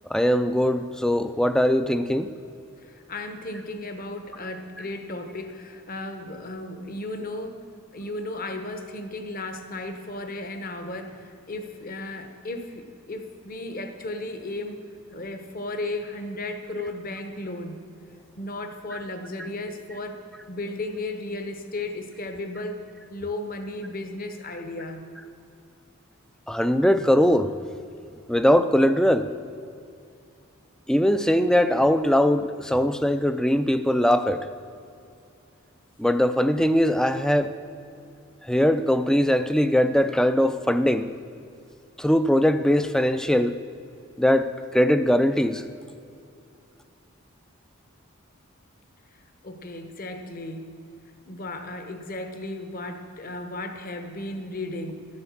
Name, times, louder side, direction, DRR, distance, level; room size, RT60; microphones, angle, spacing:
voice 1, 0.1-2.3 26.5-27.5 28.3-29.3 30.9-34.5 36.0-37.5 38.4-41.1 42.0-43.6 44.2-45.6, equal, 5° left, 11 dB, 0.3 m, -21 dB
voice 2, 2.8-7.6 7.9-14.8 15.1-17.8 18.4-20.2 20.5-22.8 23.1-25.0 49.4-50.7 51.3-55.1, left 2 dB, 40° left, 7 dB, 1.0 m, -35 dB
12.5 x 7.9 x 7.3 m, 2.5 s
head